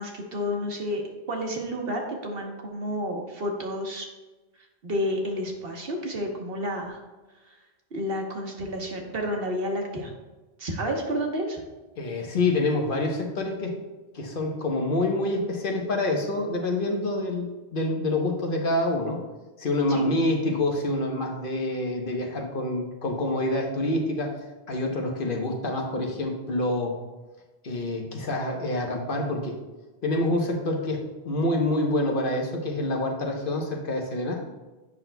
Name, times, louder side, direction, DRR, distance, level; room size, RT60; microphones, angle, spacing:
voice 1, 0.0-4.1 4.8-7.0 7.4-7.6 7.9-10.1 10.6-11.6 19.9-20.1, equal, 70° right, 1 dB, 1.2 m, -30 dB
voice 2, 12.0-13.8 14.1-19.2 19.6-24.4 24.7-27.0 27.6-29.6 30.0-34.4, left 2 dB, 60° left, 1 dB, 1.1 m, -27 dB
8.6 x 5.9 x 2.2 m, 1.2 s
omnidirectional pair, 1.0 m